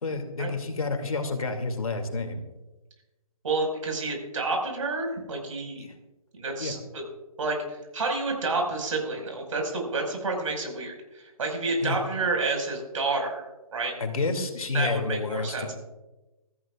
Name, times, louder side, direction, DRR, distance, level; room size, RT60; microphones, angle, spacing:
voice 1, 0.0-2.4 5.8-5.9 6.6-6.8 11.8-12.0 14.0-15.7, left 3 dB, 70° left, 5 dB, 2.6 m, -29 dB
voice 2, 3.4-5.8 6.3-7.0 7.4-13.4 13.7-13.9 14.7-15.7, right 3 dB, 60° right, 1 dB, 5.3 m, -29 dB
22.0 x 14.5 x 2.4 m, 1.1 s
figure-of-eight pair, 140°, 19 cm